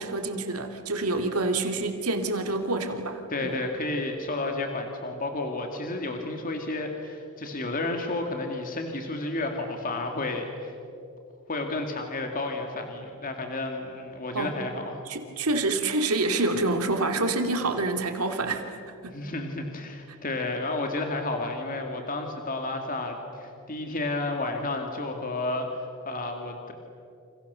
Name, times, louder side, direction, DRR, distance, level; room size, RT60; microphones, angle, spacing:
voice 1, 0.0-3.5 14.3-14.6 15.1-18.8 19.0-19.2, right 2 dB, 80° right, 5 dB, 2.8 m, -27 dB
voice 2, 3.3-10.7 11.5-15.0 19.1-26.7, left 2 dB, 40° left, 3 dB, 2.4 m, -31 dB
29.0 x 28.0 x 7.0 m, 2.6 s
head